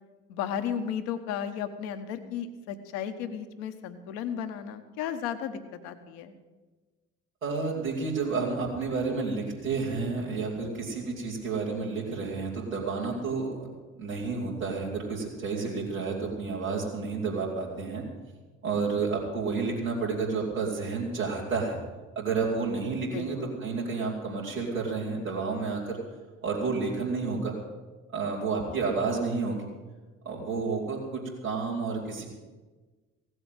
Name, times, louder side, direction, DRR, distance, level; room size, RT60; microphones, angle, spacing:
voice 1, 0.3-6.3 22.9-23.5, left 8 dB, 65° left, 8 dB, 1.3 m, -34 dB
voice 2, 7.4-13.7 14.0-18.0 18.6-21.8 22.1-26.0 26.4-27.5 28.1-29.6 30.2-32.3, right 4 dB, 90° right, -5 dB, 3.0 m, -30 dB
16.5 x 7.9 x 9.0 m, 1.3 s
figure-of-eight pair, 50°, 40 cm